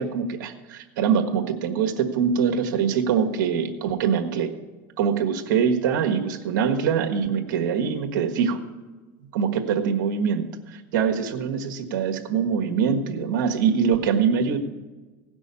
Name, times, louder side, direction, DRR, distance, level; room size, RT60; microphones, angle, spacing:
voice 1, 0.0-4.5 5.0-8.6 9.3-14.6, right 7 dB, 80° right, 4 dB, 1.4 m, -23 dB
16.5 x 6.2 x 6.9 m, 1.2 s
supercardioid pair, 115°, 11 cm